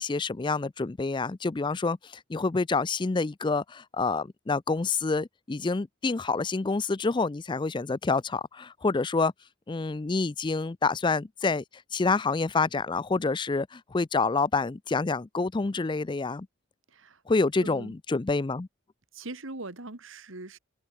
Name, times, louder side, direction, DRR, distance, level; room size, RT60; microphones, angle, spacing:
voice 1, 0.0-9.3 9.7-11.6 11.9-16.5 17.3-18.7, left 3 dB, 20° left, 0.4 m, -27 dB
voice 2, 16.9-17.2 17.6-17.9 19.1-20.6, right 2 dB, 70° right, 2.1 m, -41 dB
head